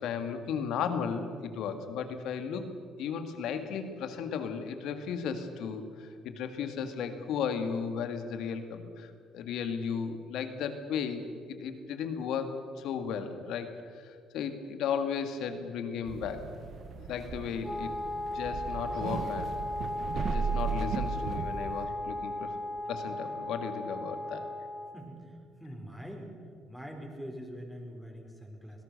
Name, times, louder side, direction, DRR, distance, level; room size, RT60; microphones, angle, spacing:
voice 1, 0.0-2.7 3.0-11.2 11.5-16.5 17.1-18.0 18.3-19.6 20.1-22.5 22.9-24.5, left 6 dB, 75° left, 8 dB, 2.2 m, -35 dB
sound 1, 16.1-21.9, right 6 dB, 60° right, 1.5 m, -36 dB
Wind instrument woodwind instrument, 17.6-25.0, left 1 dB, 15° left, 1.5 m, -36 dB
voice 2, 24.9-26.3 26.7-28.8, equal, ahead, 1 dB, 5.0 m, -44 dB
25.5 x 17.5 x 6.8 m, 2.2 s
supercardioid pair, 75°, 0 cm